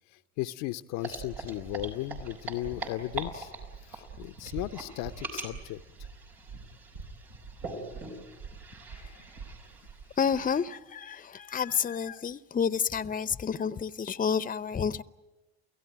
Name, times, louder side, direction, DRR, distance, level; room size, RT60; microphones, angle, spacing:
voice 1, 0.4-3.5 3.9-5.8 8.9-9.3, left 16 dB, 65° left, 0.8 m, -36 dB
sound 1, 1.0-10.5, right 3 dB, 75° right, 4.7 m, -41 dB
voice 2, 10.2-15.0, left 7 dB, 25° left, 0.8 m, -29 dB
29.0 x 16.5 x 9.3 m
hypercardioid pair, 55°, 34 cm